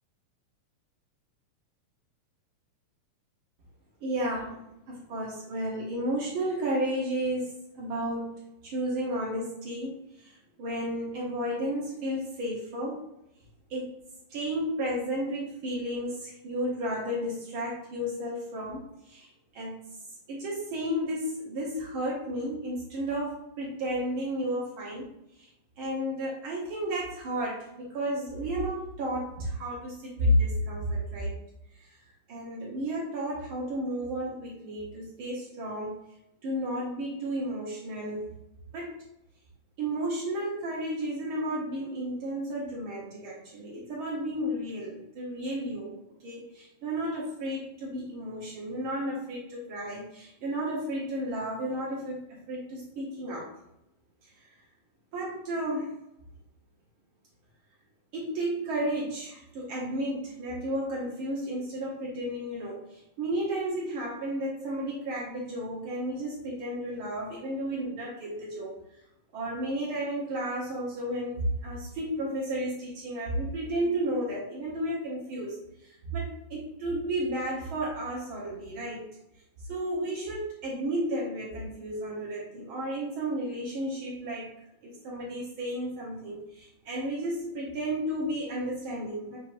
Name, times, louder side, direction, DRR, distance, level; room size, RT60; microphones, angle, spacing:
voice 1, 4.0-4.6 4.9-7.5 7.7-8.3 8.6-13.0 13.7-13.9 14.3-19.8 20.3-25.1 25.4-25.5 25.8-31.4 31.8-32.0 32.3-35.9 36.4-38.3 38.7-39.0 39.8-45.9 46.2-53.5 54.2-54.5 55.1-55.9 58.1-69.0 69.3-79.1 79.7-84.5 84.8-89.4, right 1 dB, 75° right, -5 dB, 1.2 m, -32 dB
5.9 x 3.5 x 2.5 m, 0.83 s
omnidirectional pair, 3.8 m